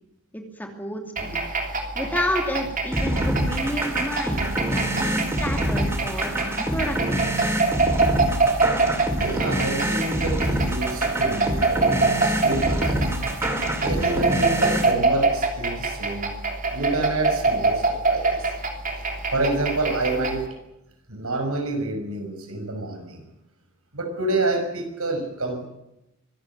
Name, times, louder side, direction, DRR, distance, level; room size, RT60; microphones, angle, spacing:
voice 1, 0.3-1.0 1.9-7.2, left 1 dB, 10° left, 3 dB, 2.7 m, -30 dB
sound 1, 1.2-20.5, right 3 dB, 35° right, 3.1 m, -25 dB
sound 2, 2.9-14.9, right 1 dB, 10° right, 2.6 m, -26 dB
voice 2, 9.1-13.1 13.8-16.3 16.7-18.5 19.0-20.5 21.1-23.2 23.9-25.6, right 2 dB, 75° right, 5 dB, 5.9 m, -28 dB
24.5 x 14.5 x 9.4 m, 0.88 s
head